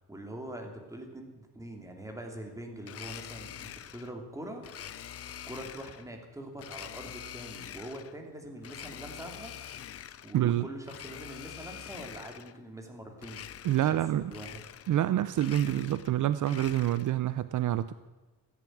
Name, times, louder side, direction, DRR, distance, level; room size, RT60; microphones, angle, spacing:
voice 1, 0.0-4.7 5.5-9.5 10.2-13.4 13.8-14.0 14.3-14.6, right 1 dB, 10° right, 3 dB, 2.9 m, -43 dB
Domestic sounds home sounds, 2.8-4.1 4.6-6.1 6.6-8.2 8.6-10.4 10.8-12.6 13.2-14.0 14.3-15.1 15.3-17.2, left 10 dB, 45° left, 0.6 m, -45 dB
voice 2, 10.3-10.7 13.6-14.3 14.9-17.9, right 12 dB, 60° right, 15 dB, 0.6 m, -27 dB
14.5 x 10.5 x 9.2 m, 1.2 s
cardioid pair, 145°, 34 cm